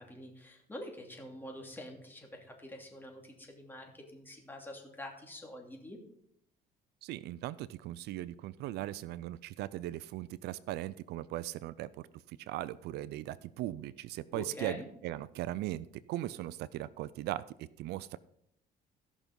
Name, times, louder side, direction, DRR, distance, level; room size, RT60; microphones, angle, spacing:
voice 1, 0.0-6.0 14.3-14.9, left 1 dB, 10° left, 1 dB, 2.7 m, -46 dB
voice 2, 7.0-11.9 12.5-17.4 17.8-18.2, right 14 dB, 80° right, 18 dB, 0.4 m, -38 dB
15.0 x 6.1 x 5.3 m, 0.73 s
cardioid pair, 110°, 17 cm